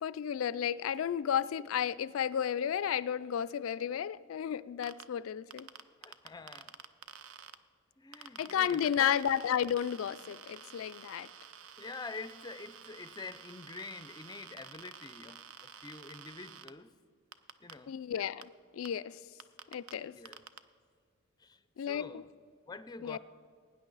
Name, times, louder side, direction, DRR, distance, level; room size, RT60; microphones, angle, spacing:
voice 1, 0.0-5.7 8.4-11.3 17.9-19.2 19.7-20.2 21.8-22.2 23.0-23.2, left 9 dB, 85° left, 0.3 m, -33 dB
sound 1, 4.8-5.0 5.5-7.5 8.1-16.7 17.3-17.7 18.4-18.5 18.8-18.9 19.4-19.9 20.3-20.6, right 8 dB, 75° right, 0.5 m, -50 dB
voice 2, 6.0-6.7 8.0-9.2 11.8-16.9 17.6-17.9 20.2-20.4 21.4-22.3 22.7-23.2, left 3 dB, 20° left, 0.5 m, -46 dB
19.0 x 9.6 x 4.0 m
head